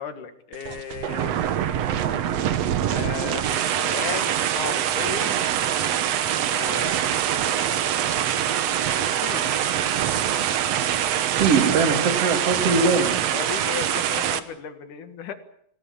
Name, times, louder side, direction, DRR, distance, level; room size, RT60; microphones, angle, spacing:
voice 1, 0.0-2.1 2.9-5.4 6.5-8.2 9.2-9.5 13.3-15.3, left 7 dB, 65° left, 9 dB, 3.3 m, -36 dB
sound 1, 0.5-14.4, right 10 dB, 60° right, 1.9 m, -24 dB
voice 2, 11.3-13.3, right 4 dB, 45° right, 6 dB, 3.5 m, -21 dB
25.0 x 18.0 x 8.7 m, 0.71 s
omnidirectional pair, 4.0 m